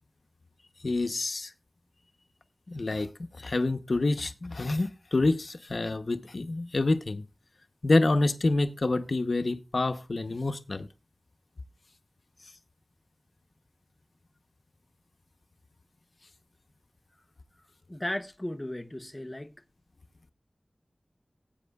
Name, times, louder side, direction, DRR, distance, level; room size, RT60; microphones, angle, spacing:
voice 1, 0.8-1.5 2.7-3.1 3.4-7.2 7.8-10.9, left 2 dB, 80° left, 0.7 m, -27 dB
voice 2, 17.9-19.5, left 1 dB, 20° left, 0.6 m, -35 dB
18.5 x 8.6 x 2.3 m
wide cardioid pair, 60°, 0 cm